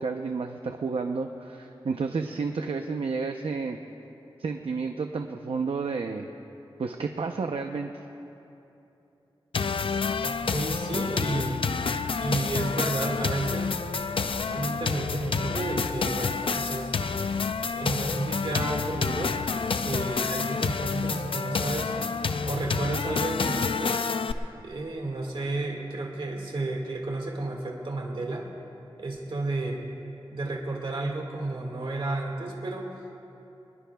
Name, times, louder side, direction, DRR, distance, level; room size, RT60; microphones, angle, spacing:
voice 1, 0.0-3.8 4.4-6.3 6.8-7.9, right 4 dB, 90° right, 4 dB, 0.7 m, -31 dB
sound 1, 9.5-24.3, left 5 dB, 70° left, 0.5 m, -29 dB
sound 2, 9.8-20.7, left 1 dB, 35° left, 2.2 m, -50 dB
voice 2, 10.2-11.6 12.2-13.8 14.5-16.9 17.7-19.3 19.8-21.9 22.4-24.0 24.6-28.5 29.0-29.8 30.3-33.0, right 2 dB, 65° right, -1 dB, 1.9 m, -32 dB
25.0 x 20.5 x 2.3 m, 2.9 s
wide cardioid pair, 95°, 9 cm